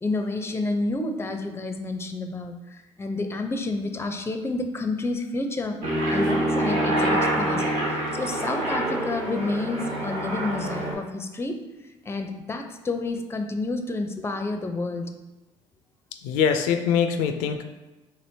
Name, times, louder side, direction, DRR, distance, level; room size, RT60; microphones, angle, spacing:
voice 1, 0.0-5.8 6.1-11.6 12.1-15.1, left 2 dB, 15° left, 6 dB, 0.5 m, -29 dB
Aircraft, 5.8-10.9, right 1 dB, 60° right, 1.0 m, -26 dB
voice 2, 16.1-17.6, left 7 dB, 70° left, 7 dB, 0.4 m, -23 dB
4.3 x 3.0 x 2.7 m, 1.1 s
hypercardioid pair, 60°, 15 cm